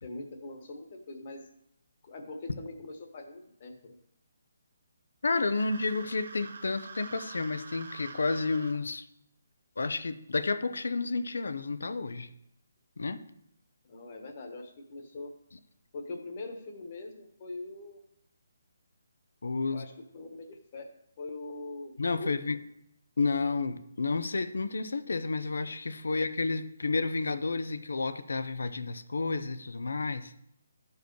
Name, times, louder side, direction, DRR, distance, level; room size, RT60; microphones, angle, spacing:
voice 1, 0.0-1.4 2.0-4.0 13.8-15.3 15.9-18.0 19.7-20.9 21.2-22.6 26.1-26.2, left 2 dB, 35° left, 4 dB, 1.3 m, -42 dB
voice 2, 5.2-9.1 9.8-12.3 13.0-13.2 19.4-19.8 22.0-22.6 23.2-30.3, left 3 dB, 80° left, 11 dB, 0.7 m, -31 dB
sound 1, 5.2-8.8, right 4 dB, 55° right, 0.9 m, -46 dB
12.0 x 4.7 x 4.7 m, 0.78 s
hypercardioid pair, 170°, 0 cm